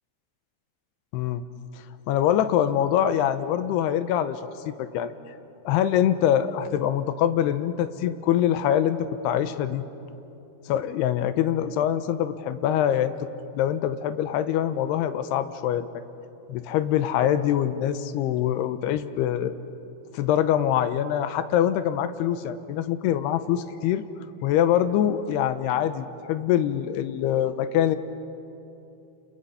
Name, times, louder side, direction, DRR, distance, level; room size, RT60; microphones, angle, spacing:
voice 1, 1.1-1.4 2.1-4.4 4.8-5.1 5.7-9.8 10.7-13.1 13.5-15.9 16.5-19.5 20.1-24.0 24.4-28.0, left 10 dB, 85° left, 11 dB, 2.8 m, -24 dB
30.0 x 28.0 x 5.7 m, 2.8 s
omnidirectional pair, 4.7 m